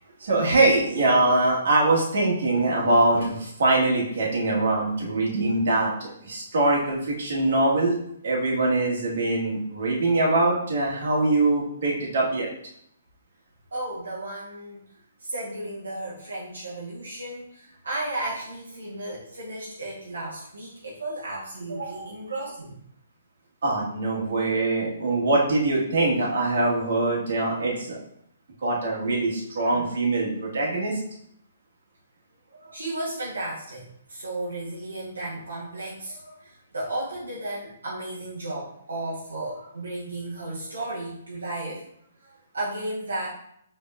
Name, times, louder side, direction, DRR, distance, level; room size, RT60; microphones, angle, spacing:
voice 1, 0.2-8.0 8.2-12.5 23.6-28.0 28.6-31.0, right 2 dB, 65° right, -3 dB, 1.4 m, -23 dB
voice 2, 13.7-14.8 15.2-22.8 29.6-29.8 32.5-41.8 42.2-43.3, right 2 dB, 90° right, -6 dB, 1.0 m, -34 dB
5.3 x 3.5 x 2.4 m, 0.71 s
hypercardioid pair, 145°, 0 cm